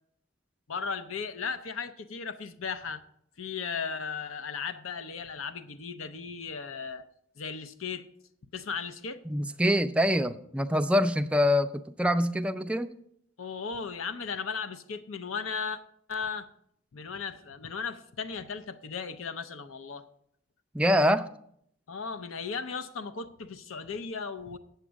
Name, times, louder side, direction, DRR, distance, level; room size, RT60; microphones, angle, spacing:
voice 1, 0.7-3.0 3.4-7.0 7.4-8.1 8.5-9.2 13.4-15.8 16.1-16.5 16.9-20.0 21.9-24.6, left 5 dB, 80° left, 11 dB, 0.6 m, -36 dB
voice 2, 9.3-12.9 20.7-21.3, equal, 5° right, 9 dB, 0.4 m, -25 dB
8.2 x 7.8 x 6.3 m, 0.71 s
head